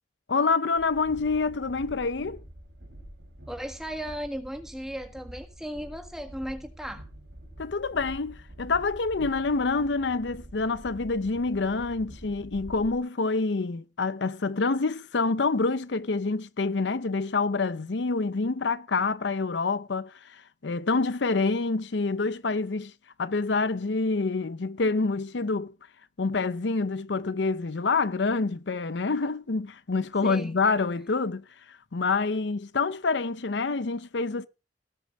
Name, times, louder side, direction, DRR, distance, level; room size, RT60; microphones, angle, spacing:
voice 1, 0.3-2.4 7.6-22.9 23.2-25.7 26.2-34.5, left 4 dB, 70° left, 0.7 m, -27 dB
Train, 0.7-13.0, equal, 60° right, 4.8 m, -46 dB
voice 2, 3.5-7.0 30.2-30.5, equal, 5° right, 1.7 m, -36 dB
18.0 x 7.0 x 4.9 m
head